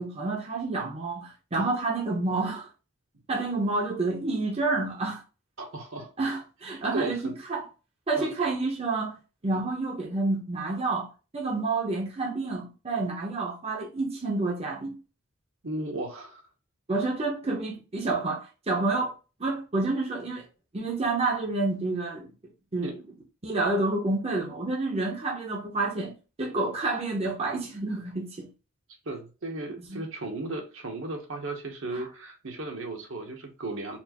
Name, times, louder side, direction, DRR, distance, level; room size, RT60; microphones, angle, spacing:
voice 1, 0.0-2.7 3.3-5.2 6.2-7.2 7.5-7.7 8.1-9.2 9.4-15.0 16.9-19.1 19.4-20.4 20.7-22.3 22.7-22.9 23.4-26.1 26.4-28.5 29.9-30.0 31.9-32.0, right 3 dB, 30° right, 0.7 m, -29 dB
voice 2, 5.6-6.1 6.9-7.3 8.2-8.3 9.5-9.6 15.6-16.4 22.8-22.9 29.0-34.0, right 2 dB, 65° right, 1.0 m, -35 dB
4.3 x 2.5 x 2.9 m
head